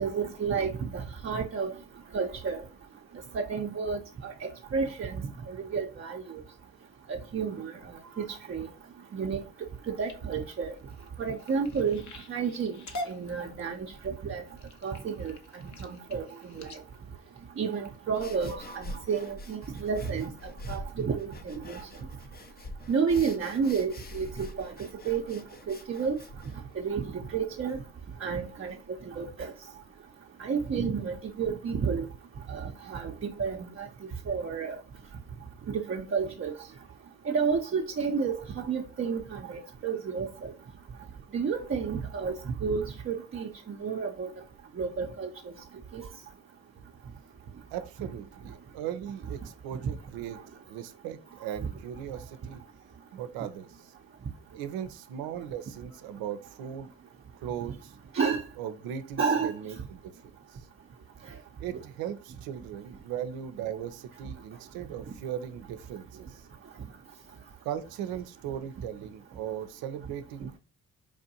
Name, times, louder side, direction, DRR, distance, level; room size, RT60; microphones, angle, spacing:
voice 1, 0.0-1.7 2.1-2.6 3.3-6.2 7.1-8.7 9.1-9.4 9.9-10.7 11.2-12.0 12.3-12.8 13.1-14.4 14.8-16.7 17.6-20.3 20.7-21.8 22.9-24.7 25.1-25.4 25.7-26.2 26.7-27.8 28.2-28.8 29.1-29.5 30.4-32.1 32.5-33.9 34.3-34.8 35.7-36.5 37.3-40.5 41.3-44.3 44.8-45.5 45.9-46.1 48.0-48.1 58.1-58.4 59.2-59.5, right 5 dB, 35° right, 0.6 m, -31 dB
sound 1, 9.7-18.4 19.0-19.3 19.7-20.1 20.6-20.7 21.0-21.1, left 1 dB, 55° left, 0.9 m, -45 dB
sound 2, 18.1-27.4, left 1 dB, 25° left, 0.6 m, -46 dB
voice 2, 47.7-50.4 50.7-52.6 53.1-53.9 54.6-56.9 57.4-57.9 58.6-60.7 61.6-66.5 67.6-70.5, right 9 dB, 85° right, 0.6 m, -38 dB
4.8 x 2.6 x 2.7 m
supercardioid pair, 55°, 35 cm